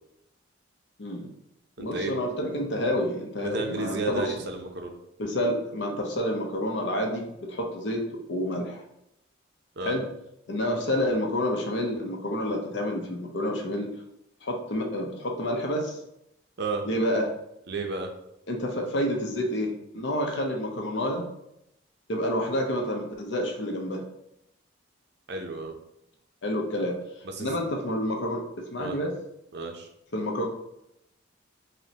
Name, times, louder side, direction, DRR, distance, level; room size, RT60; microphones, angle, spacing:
voice 1, 1.0-1.3 1.8-4.3 5.2-8.0 8.3-8.8 9.8-10.1 10.5-13.9 14.4-16.0 16.8-17.3 18.5-21.3 22.1-24.0 26.4-27.0 27.4-29.1 30.1-30.5, equal, 60° left, 2 dB, 0.6 m, -29 dB
voice 2, 1.8-2.1 3.4-4.9 9.8-9.9 16.6-16.9 17.7-18.1 25.3-25.8 27.2-27.6 28.8-29.0 29.5-29.9, right 3 dB, 55° right, 4 dB, 0.5 m, -32 dB
5.3 x 2.1 x 2.8 m, 0.81 s
head